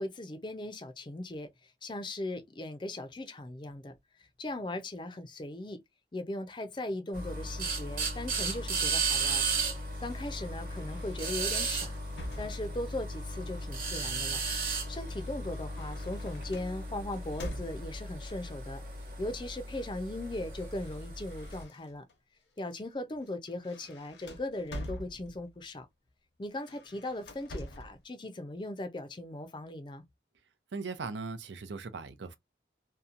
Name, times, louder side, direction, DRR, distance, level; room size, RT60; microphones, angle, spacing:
voice 1, 0.0-3.9 4.2-5.8 6.1-9.4 9.7-12.0 12.4-14.4 14.9-18.8 19.2-22.1 22.6-25.9 26.4-30.0, left 1 dB, 25° left, 0.4 m, -39 dB
sound 1, 7.1-21.6, right 3 dB, 50° right, 1.1 m, -35 dB
sound 2, 9.9-13.0 14.0-18.2 19.2-19.6 19.9-22.2 22.6-22.8 23.2-25.6 26.5-28.0, equal, 85° left, 0.9 m, -47 dB
voice 2, 30.7-32.4, right 4 dB, 85° right, 0.5 m, -39 dB
2.8 x 2.2 x 2.5 m
head